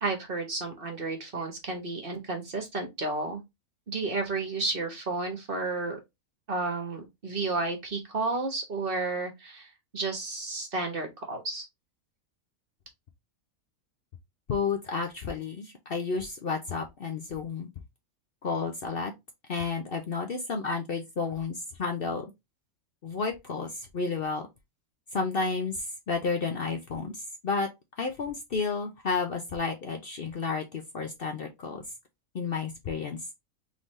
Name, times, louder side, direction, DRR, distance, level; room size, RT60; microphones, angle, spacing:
voice 1, 0.0-3.4 3.9-6.0 6.5-11.6, right 3 dB, 45° right, 1.3 m, -32 dB
voice 2, 14.5-17.7 18.4-19.1 19.5-22.3 23.0-24.4 25.1-27.7 28.0-31.8 32.3-33.2, left 4 dB, 50° left, 0.8 m, -31 dB
3.9 x 3.7 x 3.1 m
omnidirectional pair, 1.4 m